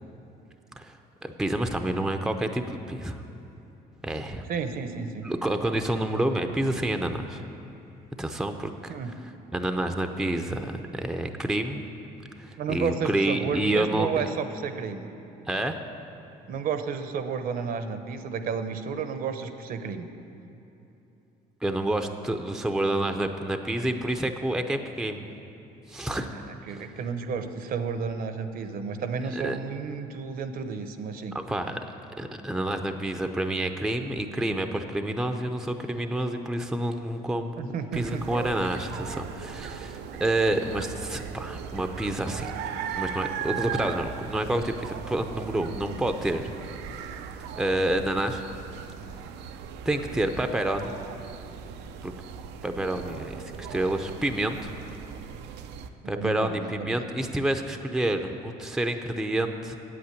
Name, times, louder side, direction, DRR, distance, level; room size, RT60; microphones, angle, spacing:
voice 1, 1.2-3.2 4.0-4.4 5.2-7.4 8.2-8.9 9.5-11.8 12.4-14.1 15.5-15.8 21.6-25.3 25.9-26.3 26.7-26.9 29.3-29.6 31.3-31.8 32.2-42.5 42.9-46.6 47.5-48.4 49.8-50.9 52.0-52.1 52.6-54.7 56.1-59.8, right 1 dB, 5° right, 6 dB, 0.6 m, -28 dB
voice 2, 4.5-5.3 8.9-9.1 12.6-15.1 16.5-20.1 26.3-26.4 26.7-31.3 37.6-38.2 56.1-57.1, right 6 dB, 60° right, 9 dB, 0.8 m, -32 dB
sound 1, 37.9-55.9, right 8 dB, 90° right, 0.6 m, -38 dB
8.6 x 7.8 x 9.1 m, 3.0 s
cardioid pair, 110°, 17 cm